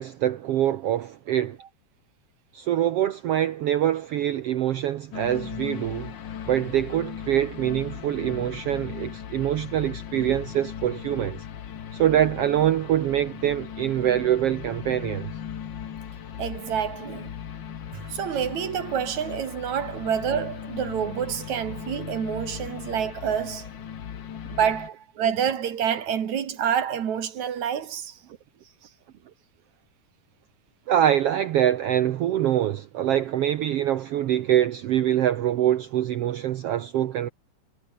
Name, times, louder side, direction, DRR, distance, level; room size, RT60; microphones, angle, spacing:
voice 1, 0.0-1.6 2.5-6.1 6.5-11.4 11.9-15.3 30.9-37.3, right 11 dB, 80° right, 1.3 m, -24 dB
sound 1, 5.1-24.9, left 8 dB, 55° left, 1.3 m, -38 dB
voice 2, 16.4-17.3 17.9-23.7 24.5-28.2, right 8 dB, 60° right, 3.2 m, -28 dB
omnidirectional pair, 3.8 m